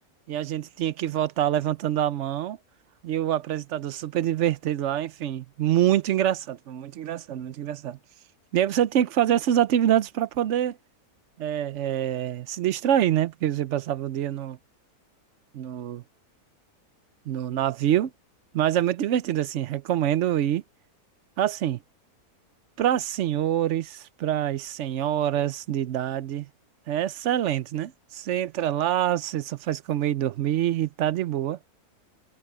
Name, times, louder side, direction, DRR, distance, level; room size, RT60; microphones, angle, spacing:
voice 1, 0.3-2.6 3.0-8.0 8.5-10.8 11.4-14.6 15.5-16.0 17.3-18.1 18.5-20.6 21.4-21.8 22.8-26.5 26.9-31.6, right 11 dB, 60° right, 0.8 m, -25 dB
omnidirectional pair, 1.6 m